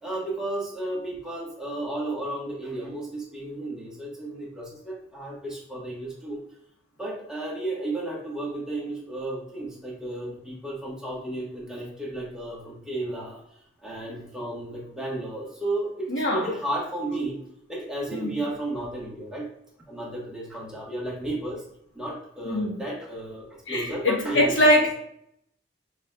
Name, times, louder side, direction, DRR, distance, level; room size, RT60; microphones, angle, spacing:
voice 1, 0.0-6.4 7.0-13.4 13.8-17.4 17.7-19.5 19.9-21.6 21.9-24.9, right 1 dB, 5° right, -5 dB, 1.2 m, -33 dB
voice 2, 16.1-16.6 18.1-18.4 22.4-22.8 23.7-24.9, left 1 dB, 80° left, -1 dB, 1.2 m, -23 dB
6.0 x 3.5 x 2.2 m, 0.72 s
head